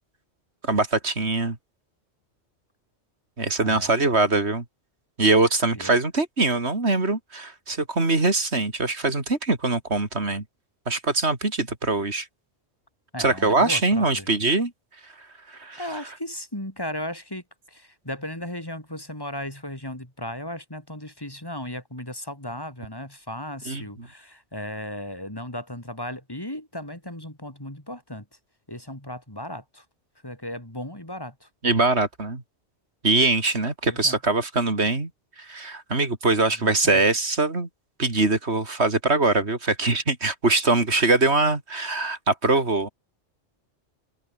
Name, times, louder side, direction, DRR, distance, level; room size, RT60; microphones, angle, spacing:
voice 1, 0.6-1.6 3.4-4.6 5.2-10.4 10.9-12.3 13.2-14.7 15.2-15.8 23.7-23.8 31.6-32.4 33.0-35.1 35.4-37.7 38.0-42.9, right 3 dB, 70° right, 3.9 m, -22 dB
voice 2, 13.1-14.4 15.8-28.3 28.7-29.9 30.2-31.5 33.9-34.2 36.4-37.0, left 1 dB, 20° left, 4.3 m, -36 dB
omnidirectional pair, 1.2 m